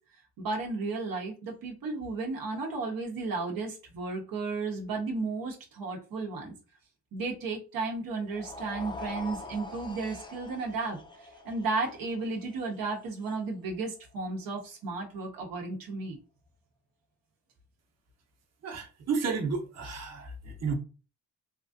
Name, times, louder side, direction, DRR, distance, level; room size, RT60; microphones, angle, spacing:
voice 1, 0.4-6.5 7.1-16.2, right 3 dB, 80° right, 0.9 m, -34 dB
sound 1, 8.2-14.5, left 2 dB, 15° left, 0.4 m, -44 dB
voice 2, 18.6-20.7, right 5 dB, 50° right, 0.9 m, -32 dB
3.0 x 2.5 x 2.5 m
cardioid pair, 125°, 35 cm